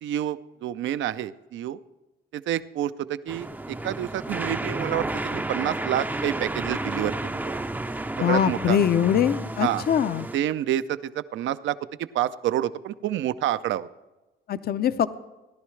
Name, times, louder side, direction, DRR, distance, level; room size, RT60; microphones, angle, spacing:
voice 1, 0.0-1.8 2.3-3.5 3.8-7.6 8.3-8.8 9.6-9.8 10.3-11.8 12.1-13.9, right 12 dB, 75° right, 14 dB, 0.5 m, -28 dB
sound 1, 3.3-10.4, right 2 dB, 10° right, 0.5 m, -31 dB
voice 2, 8.1-10.3 14.5-15.3, left 9 dB, 50° left, 13 dB, 0.6 m, -23 dB
17.5 x 11.0 x 3.2 m, 1.1 s
cardioid pair, 90°, 20 cm